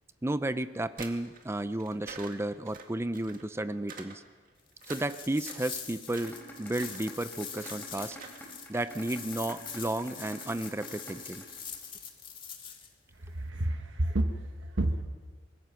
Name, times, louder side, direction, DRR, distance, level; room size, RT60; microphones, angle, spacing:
voice 1, 0.2-4.2 4.9-8.2 8.7-11.4, right 1 dB, 15° right, 13 dB, 0.6 m, -33 dB
sound 1, 1.0-3.5 3.9-4.2 4.5-5.7 6.0-6.4 6.7-7.0 7.5-7.8 8.0-8.4 8.7-8.9, right 5 dB, 50° right, 2.0 m, -47 dB
sound 2, 4.8-12.9, left 7 dB, 30° left, 1.9 m, -44 dB
sound 3, 6.1-12.1, equal, 10° left, 4.0 m, -47 dB
voice 2, 13.2-15.0, right 1 dB, 85° right, 4 dB, 1.3 m, -30 dB
25.0 x 21.0 x 5.9 m, 1.5 s
head